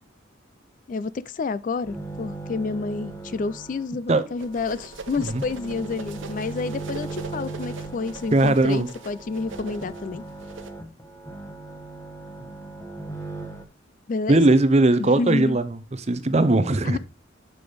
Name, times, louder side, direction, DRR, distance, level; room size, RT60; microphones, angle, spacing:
voice 1, 0.9-10.2 14.1-14.4 15.0-15.6 16.8-17.0, left 4 dB, 40° left, 0.3 m, -29 dB
sound 1, 1.8-3.9 4.2-13.6, right 2 dB, 15° left, 1.1 m, -38 dB
sound 2, 4.4-10.7, right 4 dB, 80° right, 1.0 m, -41 dB
voice 2, 8.3-8.9 14.3-15.8 16.1-17.0, right 2 dB, 35° right, 0.7 m, -19 dB
6.8 x 5.9 x 4.9 m
head